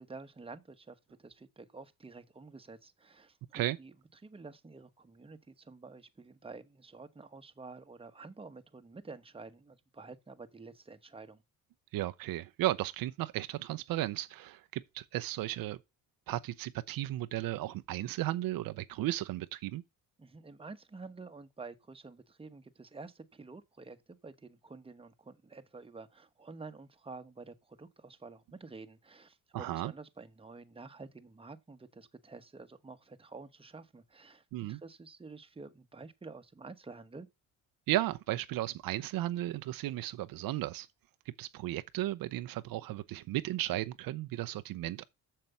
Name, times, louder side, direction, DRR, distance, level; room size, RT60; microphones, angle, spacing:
voice 1, 0.0-3.9 4.2-11.4 20.2-37.3, right 3 dB, 15° right, 1.2 m, -50 dB
voice 2, 11.9-15.8 16.3-19.8 29.5-29.9 34.5-34.8 37.9-40.9 41.4-45.1, right 15 dB, 75° right, 0.7 m, -35 dB
7.5 x 6.8 x 6.9 m
cardioid pair, 100°, 35 cm